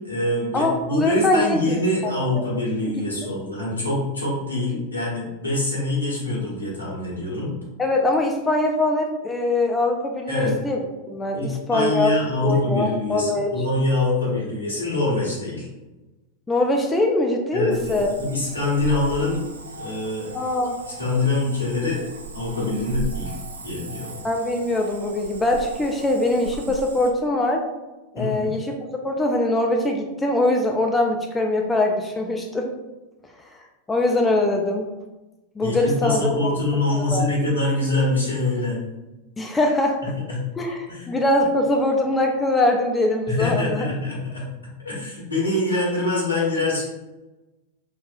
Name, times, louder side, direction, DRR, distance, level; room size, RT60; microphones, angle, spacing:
voice 1, 0.0-7.5 10.3-10.5 11.3-15.7 17.5-19.5 19.7-20.3 20.9-22.0 22.3-23.4 23.6-24.2 28.1-28.5 35.6-38.8 40.3-40.4 40.9-41.1 43.3-44.4 44.8-46.9, left 2 dB, 80° left, -6 dB, 1.1 m, -24 dB
voice 2, 0.5-1.7 2.0-2.4 7.8-10.8 11.1-12.2 12.4-13.5 16.5-18.1 20.3-20.8 24.2-27.6 28.1-28.8 29.0-32.7 33.9-34.9 35.6-36.5 37.1-37.3 39.4-40.0 40.6-43.9, left 2 dB, 15° left, 2 dB, 0.3 m, -22 dB
Cricket / Frog, 17.7-27.1, right 3 dB, 75° right, 0.3 m, -36 dB
3.4 x 2.4 x 2.3 m, 1.1 s
figure-of-eight pair, 90°, 0 cm